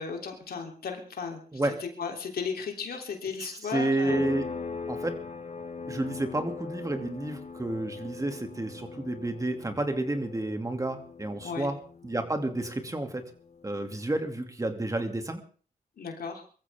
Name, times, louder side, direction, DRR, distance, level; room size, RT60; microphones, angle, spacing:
voice 1, 0.0-1.4 1.8-4.2 11.4-11.7 16.0-16.4, left 5 dB, 85° left, 2 dB, 3.4 m, -35 dB
voice 2, 3.4-4.4 4.9-5.1 5.9-11.8 12.0-13.2 13.6-15.4, right 2 dB, 20° right, 5 dB, 2.6 m, -30 dB
sound 1, 4.1-14.4, left 4 dB, 45° left, 1.4 m, -41 dB
23.5 x 14.5 x 3.6 m, 0.41 s
cardioid pair, 80°, 16 cm